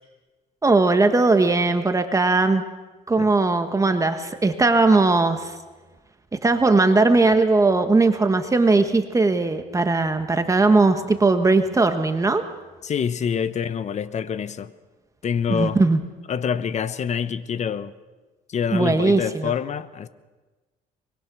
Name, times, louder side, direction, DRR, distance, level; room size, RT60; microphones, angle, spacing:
voice 1, 0.6-2.6 3.1-5.6 6.4-12.4 15.5-16.0 18.7-19.5, right 3 dB, 20° right, 1.4 m, -19 dB
voice 2, 12.8-14.7 15.2-15.8 16.3-17.9 18.5-20.1, left 7 dB, 45° left, 1.1 m, -26 dB
24.5 x 21.5 x 6.2 m
cardioid pair, 110°, 17 cm